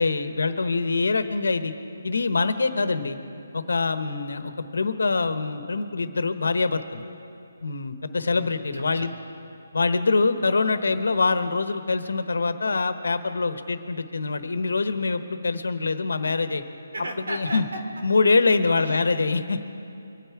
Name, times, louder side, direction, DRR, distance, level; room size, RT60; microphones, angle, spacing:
voice 1, 0.0-1.7 2.0-3.2 3.5-7.0 7.6-9.1 9.7-16.6 17.3-17.6 18.0-19.6, left 3 dB, 85° left, 10 dB, 1.1 m, -24 dB
voice 2, 8.3-9.1 16.9-17.8 18.7-19.0, right 1 dB, 80° right, 3 dB, 3.0 m, -35 dB
24.0 x 9.4 x 4.8 m, 2.6 s
hypercardioid pair, 175°, 0 cm